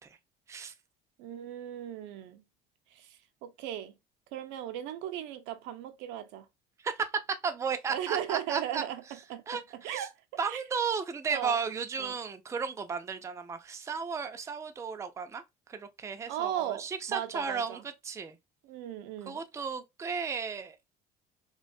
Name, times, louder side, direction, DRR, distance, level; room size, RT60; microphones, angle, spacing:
voice 1, 1.2-2.4 2.9-3.9 4.3-6.5 7.9-10.2 10.5-10.6 11.3-11.6 12.0-12.2 16.3-17.8 18.6-19.4, right 11 dB, 80° right, 0.4 m, -37 dB
voice 2, 6.8-8.8 9.5-10.1 10.4-15.4 15.7-18.4 19.3-20.8, right 5 dB, 15° right, 0.3 m, -34 dB
2.4 x 2.1 x 2.4 m
supercardioid pair, 90°, 19 cm